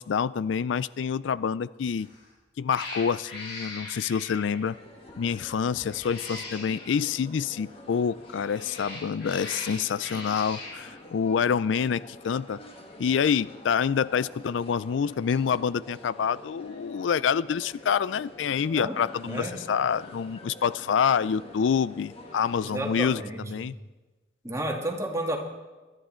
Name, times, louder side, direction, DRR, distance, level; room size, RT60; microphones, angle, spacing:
voice 1, 0.0-2.1 2.6-4.7 5.2-12.6 13.0-23.7, left 7 dB, 80° left, 19 dB, 0.4 m, -27 dB
Cat, 2.0-2.3 2.7-4.7 5.8-6.9 8.2-10.8, left 2 dB, 60° left, 4.8 m, -40 dB
sound 1, 4.5-23.2, left 1 dB, 30° left, 2.0 m, -47 dB
voice 2, 19.3-19.6 22.6-23.7 24.4-25.4, right 1 dB, 15° right, 1 dB, 2.1 m, -31 dB
23.5 x 10.5 x 4.4 m, 1.2 s
head